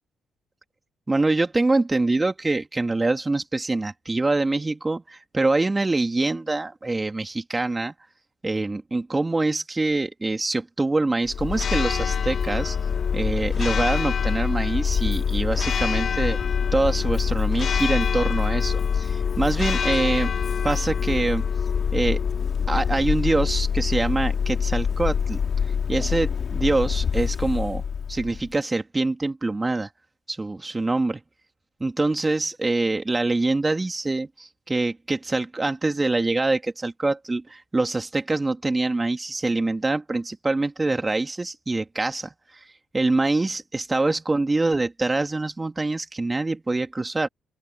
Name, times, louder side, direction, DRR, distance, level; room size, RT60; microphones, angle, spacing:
voice 1, 1.1-7.9 8.4-12.8 13.1-16.4 16.7-20.3 20.6-21.5 21.9-22.2 22.7-25.4 25.9-27.8 28.1-29.9 30.3-31.2 31.8-42.6 42.9-47.3, right 2 dB, 20° right, 2.6 m, -25 dB
Church bell, 11.3-28.5, left 7 dB, 50° left, 2.5 m, -25 dB
open air
cardioid pair, 90°, 0 cm